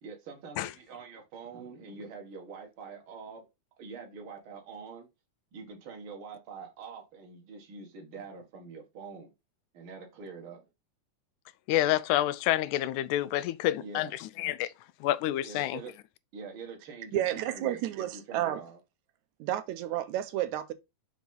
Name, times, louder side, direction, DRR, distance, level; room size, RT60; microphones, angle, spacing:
voice 1, 0.0-3.5 3.8-5.1 5.5-9.3 9.7-10.6 13.8-14.1 15.4-15.9 16.3-18.8, right 5 dB, 50° right, 2.4 m, -45 dB
voice 2, 11.7-14.7 15.0-15.8, left 14 dB, 85° left, 2.0 m, -28 dB
voice 3, 17.1-18.6 19.4-20.7, right 13 dB, 80° right, 2.0 m, -31 dB
5.7 x 4.8 x 3.9 m
omnidirectional pair, 3.5 m